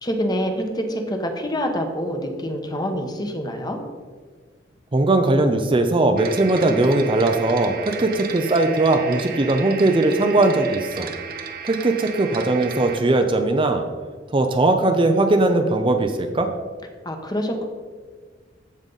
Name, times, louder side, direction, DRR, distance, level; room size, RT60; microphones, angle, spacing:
voice 1, 0.0-3.8 17.0-17.6, equal, 20° left, 4 dB, 1.1 m, -26 dB
voice 2, 4.9-11.1 11.6-13.8 14.3-16.5, right 2 dB, 30° right, 6 dB, 0.6 m, -19 dB
sound 1, 6.2-13.0, right 6 dB, 50° right, 0.9 m, -34 dB
14.5 x 5.2 x 4.0 m, 1.5 s
head